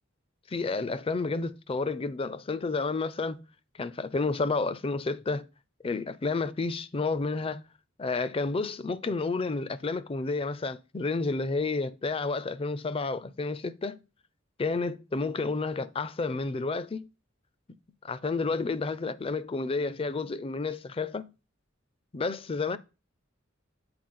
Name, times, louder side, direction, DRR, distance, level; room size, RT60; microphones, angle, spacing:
voice 1, 0.5-3.4 3.8-5.4 5.8-7.6 8.0-14.0 14.6-17.1 18.0-21.3 22.1-22.8, left 3 dB, 30° left, 0.4 m, -30 dB
7.8 x 4.4 x 3.8 m
head